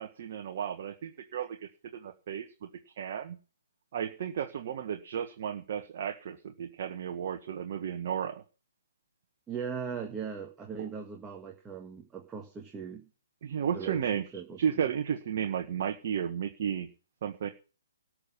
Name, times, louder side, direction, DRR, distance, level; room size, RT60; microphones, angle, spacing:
voice 1, 0.0-2.7 3.0-3.4 3.9-8.4 10.8-10.9 13.4-14.2 14.6-16.9 17.2-17.5, right 8 dB, 45° right, 5 dB, 1.5 m, -33 dB
voice 2, 9.5-13.1 13.7-14.6, right 6 dB, 10° right, 1 dB, 1.9 m, -39 dB
13.0 x 6.4 x 9.0 m, 0.36 s
figure-of-eight pair, 135°, 0 cm